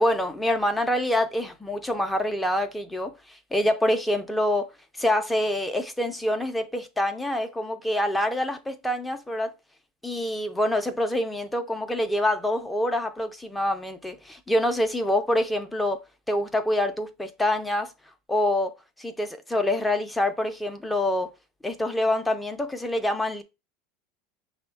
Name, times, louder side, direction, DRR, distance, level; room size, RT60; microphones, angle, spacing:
voice 1, 0.0-4.7 5.0-9.5 10.0-16.0 16.3-17.9 18.3-18.7 19.0-21.3 21.6-23.4, left 1 dB, 5° left, 0.4 m, -26 dB
5.9 x 2.1 x 4.3 m
supercardioid pair, 170°, 0 cm